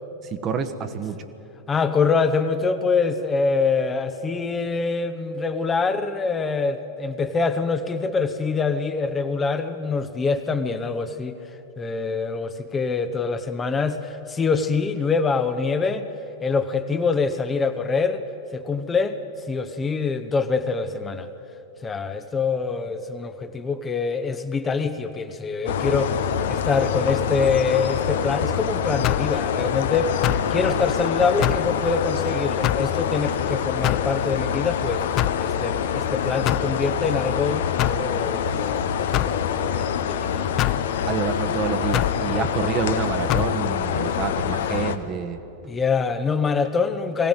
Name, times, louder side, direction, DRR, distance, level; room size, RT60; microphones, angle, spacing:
voice 1, 0.2-1.3 30.5-30.9 41.1-45.4, right 7 dB, 30° right, 8 dB, 1.3 m, -28 dB
voice 2, 1.7-11.4 11.8-16.1 16.4-18.2 18.5-19.2 19.5-21.3 21.8-30.1 30.5-35.0 35.4-40.8 42.3-42.5 45.7-47.3, left 4 dB, 20° left, 8 dB, 1.0 m, -25 dB
sound 1, 25.7-45.0, left 8 dB, 60° left, 1.0 m, -25 dB
sound 2, 29.0-29.3 30.2-30.5 31.4-31.7 32.6-32.9 33.8-34.1 35.2-35.4 36.4-36.7 37.8-38.0 39.1-39.4 40.6-40.8 41.9-42.2 43.3-43.5, left 15 dB, 35° left, 0.5 m, -24 dB
21.5 x 17.0 x 9.0 m, 2.9 s
figure-of-eight pair, 90°, 0 cm